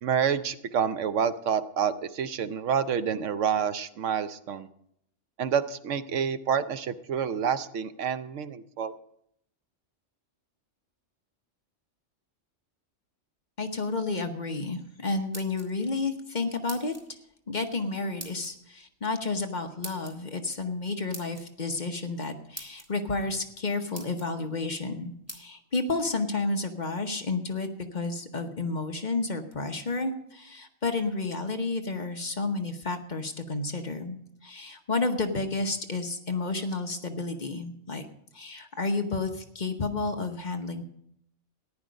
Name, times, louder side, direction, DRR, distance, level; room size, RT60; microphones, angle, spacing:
voice 1, 0.0-4.7 5.4-8.9, right 7 dB, 80° right, 12 dB, 1.0 m, -28 dB
voice 2, 13.6-16.9 17.5-34.2 34.4-38.1 38.3-40.8, left 3 dB, 40° left, 5 dB, 1.1 m, -31 dB
sound 1, 15.1-16.0 16.7-17.1 18.2-18.5 19.8-20.1 21.1-21.5 22.2-22.3 22.5-22.9 23.5-23.6 23.9-24.3 25.3-25.4, right 1 dB, 10° right, 1.8 m, -42 dB
14.5 x 10.5 x 5.2 m, 0.75 s
omnidirectional pair, 1.3 m